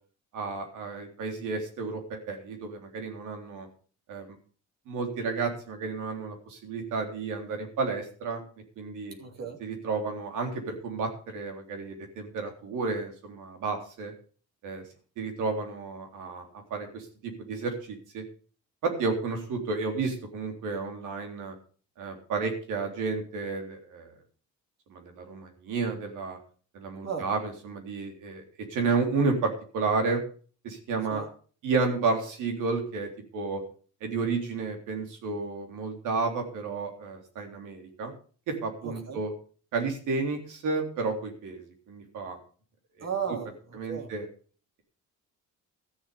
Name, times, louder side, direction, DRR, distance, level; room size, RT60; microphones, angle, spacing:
voice 1, 0.3-3.7 4.1-4.4 4.9-8.4 8.8-9.2 9.6-14.1 14.6-14.8 15.2-18.2 18.8-21.5 22.0-24.1 24.9-26.4 26.7-28.4 28.7-30.2 30.6-31.3 31.6-33.6 34.0-38.1 38.5-39.3 39.7-42.4 43.0-43.1 43.7-44.3, right 4 dB, 85° right, 3 dB, 3.6 m, -31 dB
voice 2, 9.2-9.6 27.0-27.3 31.1-31.3 38.8-39.2 43.0-44.1, right 7 dB, 60° right, 3 dB, 3.0 m, -35 dB
13.5 x 7.2 x 6.9 m, 0.41 s
cardioid pair, 90°, 30 cm